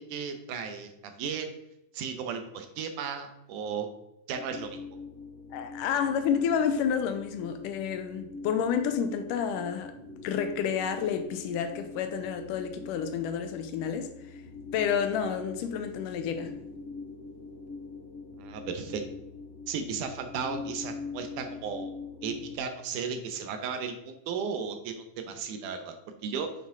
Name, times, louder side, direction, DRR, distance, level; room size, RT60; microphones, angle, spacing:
voice 1, 0.0-1.5 1.9-3.9 4.3-4.8 18.4-19.0 19.7-21.9 22.2-24.9 25.3-26.0 26.2-26.5, right 6 dB, 80° right, 2.2 m, -35 dB
sound 1, 4.3-22.6, left 4 dB, 65° left, 2.5 m, -43 dB
voice 2, 5.5-9.9 10.2-14.1 14.7-16.5, left 7 dB, 90° left, 2.3 m, -30 dB
7.5 x 5.5 x 3.7 m
omnidirectional pair, 3.7 m